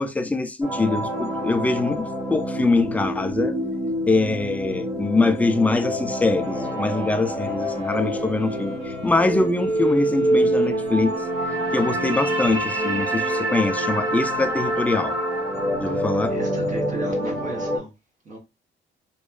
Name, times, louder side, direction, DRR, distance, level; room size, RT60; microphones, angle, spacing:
voice 1, 0.0-3.6 4.1-11.2 11.7-15.2 15.8-16.4, left 3 dB, 5° left, 0.3 m, -23 dB
sound 1, 0.6-17.8, right 1 dB, 15° right, 1.2 m, -26 dB
sound 2, 6.4-12.9, right 3 dB, 75° right, 1.2 m, -44 dB
voice 2, 16.3-17.9 18.3-18.4, right 1 dB, 40° right, 0.9 m, -36 dB
2.8 x 2.2 x 2.2 m
cardioid pair, 90°, 20 cm